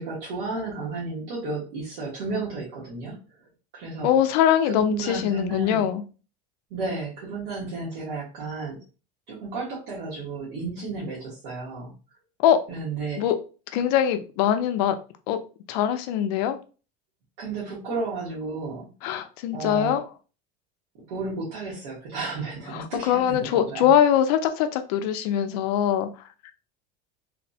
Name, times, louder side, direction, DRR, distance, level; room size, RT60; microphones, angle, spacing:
voice 1, 0.0-3.2 3.7-4.1 4.6-5.9 6.7-8.8 9.3-11.9 12.7-13.2 17.4-18.9 19.5-20.0 21.1-23.9, right 3 dB, 85° right, -7 dB, 1.3 m, -33 dB
voice 2, 4.0-6.0 12.4-12.6 13.2-13.4 13.7-15.0 15.3-15.4 15.7-16.6 19.0-20.0 22.7-26.1, left 10 dB, 70° left, 9 dB, 0.5 m, -22 dB
3.2 x 2.0 x 2.6 m, 0.35 s
cardioid pair, 180°, 21 cm